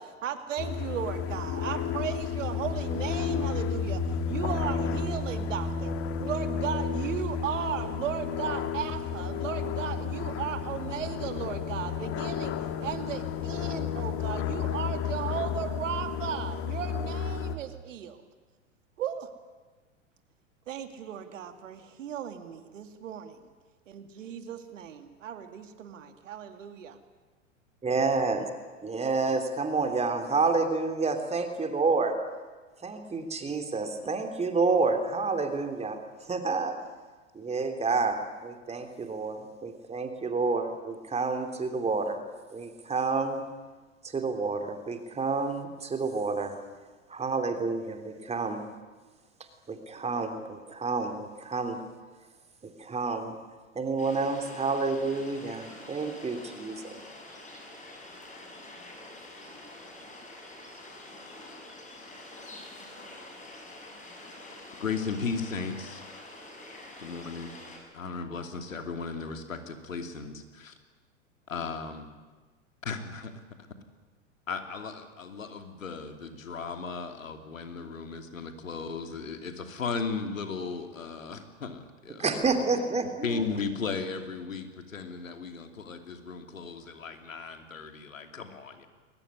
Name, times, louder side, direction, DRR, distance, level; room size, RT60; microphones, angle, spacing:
voice 1, 0.2-4.0 4.3-5.9 6.2-18.2 19.0-19.3 20.7-23.4 23.9-27.0, right 9 dB, 70° right, 8 dB, 2.5 m, -36 dB
sound 1, 0.6-17.6, left 6 dB, 35° left, 2.0 m, -32 dB
voice 2, 27.8-28.5 28.8-32.1 32.8-36.7 37.3-38.2 38.4-43.4 44.0-46.5 47.1-48.7 49.7-51.8 52.8-53.4 53.7-57.0 82.2-83.4, right 4 dB, 15° right, 6 dB, 3.1 m, -29 dB
sound 2, 54.0-67.8, left 2 dB, 20° left, 7.1 m, -46 dB
voice 3, 64.8-66.0 67.0-67.5 67.9-70.7 71.5-72.1 72.8-73.3 74.5-82.7 83.2-88.9, left 5 dB, 85° left, 6 dB, 3.0 m, -36 dB
22.0 x 19.5 x 9.7 m, 1.3 s
hypercardioid pair, 100°, 38 cm